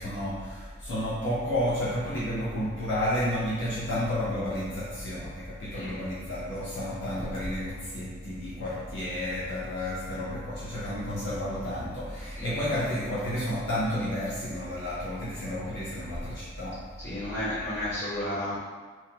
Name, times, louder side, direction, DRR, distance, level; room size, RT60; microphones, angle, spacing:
voice 1, 0.0-16.7, left 1 dB, 60° left, -9 dB, 0.7 m, -31 dB
voice 2, 12.3-12.8 17.0-18.6, left 1 dB, 15° left, -15 dB, 1.5 m, -33 dB
3.1 x 2.2 x 2.8 m, 1.4 s
head